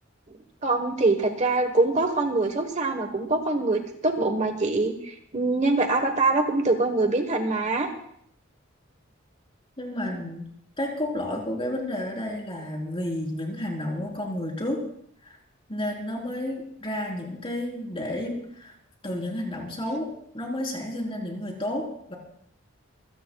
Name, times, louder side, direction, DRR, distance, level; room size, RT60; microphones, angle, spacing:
voice 1, 0.3-7.9, right 2 dB, 35° right, 6 dB, 1.2 m, -24 dB
voice 2, 9.8-10.5 10.8-14.8 15.2-15.4 15.7-18.7 19.0-22.2, left 1 dB, 25° left, -1 dB, 3.7 m, -31 dB
26.0 x 17.0 x 2.3 m, 0.69 s
head